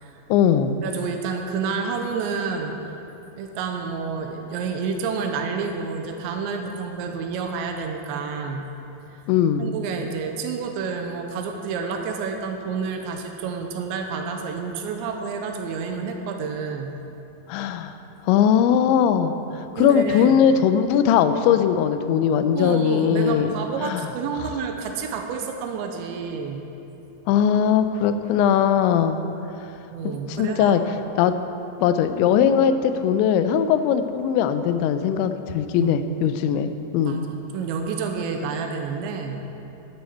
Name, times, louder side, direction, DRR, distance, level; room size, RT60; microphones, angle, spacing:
voice 1, 0.3-0.7 9.3-9.7 17.5-17.9 18.2-24.1 27.3-29.2 30.3-31.4 31.8-37.2, left 8 dB, 90° left, 10 dB, 2.9 m, -20 dB
voice 2, 0.8-2.8 3.4-8.7 9.6-17.0 19.8-20.4 22.5-26.6 29.9-30.8 35.7-36.0 37.0-39.4, right 5 dB, 90° right, 3 dB, 3.1 m, -29 dB
13.0 x 11.5 x 4.4 m, 2.9 s
omnidirectional pair, 5.2 m